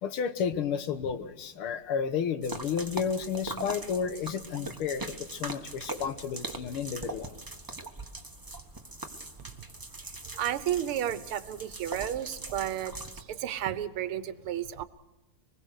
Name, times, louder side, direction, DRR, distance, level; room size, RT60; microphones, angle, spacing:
voice 1, 0.0-7.3, left 7 dB, 90° left, 10 dB, 2.0 m, -32 dB
sound 1, 2.4-13.2, right 2 dB, 15° right, 0.9 m, -41 dB
voice 2, 10.0-14.8, right 11 dB, 90° right, 14 dB, 1.8 m, -33 dB
25.0 x 20.5 x 6.5 m, 0.96 s
omnidirectional pair, 2.3 m